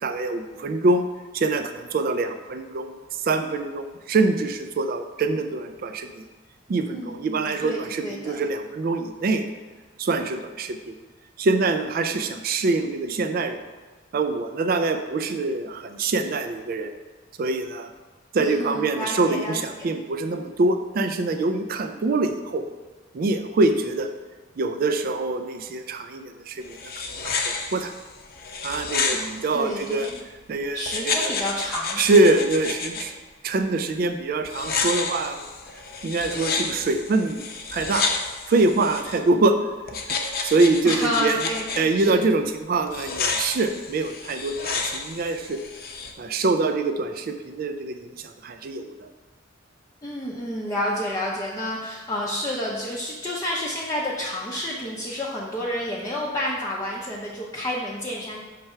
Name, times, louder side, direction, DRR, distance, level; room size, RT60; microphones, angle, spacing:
voice 1, 0.0-1.1 1.3-6.2 6.7-9.4 10.0-10.9 11.4-13.6 14.1-16.9 17.4-17.9 18.3-22.6 23.1-24.1 24.6-26.8 27.2-27.9 28.6-30.1 30.5-31.3 32.0-33.1 33.4-35.4 36.0-38.1 38.5-39.6 39.9-40.0 40.4-41.4 41.8-45.6 46.2-49.1, right 3 dB, 50° right, 6 dB, 0.4 m, -24 dB
voice 2, 6.8-8.4 18.4-19.9 29.1-30.2 30.7-32.0 40.8-42.2 50.0-58.4, left 1 dB, 15° left, -6 dB, 0.6 m, -30 dB
sound 1, 26.6-30.2 30.9-33.0 34.4-39.2 39.9-41.8 42.9-46.1, left 4 dB, 50° left, 0.7 m, -30 dB
5.8 x 3.3 x 5.5 m, 1.3 s
head